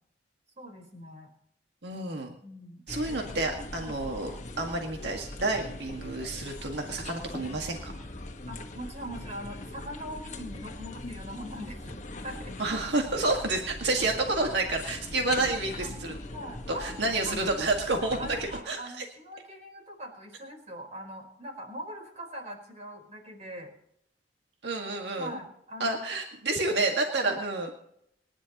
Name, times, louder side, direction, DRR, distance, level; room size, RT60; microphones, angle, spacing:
voice 1, 0.6-1.3 2.4-2.8 3.8-3.9 8.5-11.9 12.2-12.6 15.8-15.9 16.3-17.4 17.9-23.7 25.2-26.0 27.1-27.4, equal, 40° right, 2 dB, 4.3 m, -42 dB
voice 2, 1.8-2.3 2.9-7.9 12.6-16.1 16.7-19.0 24.6-25.4 25.8-27.7, right 2 dB, 70° right, 2 dB, 1.9 m, -29 dB
sound 1, 2.9-18.6, left 1 dB, 45° left, 1.5 m, -41 dB
27.0 x 11.0 x 3.0 m, 0.73 s
head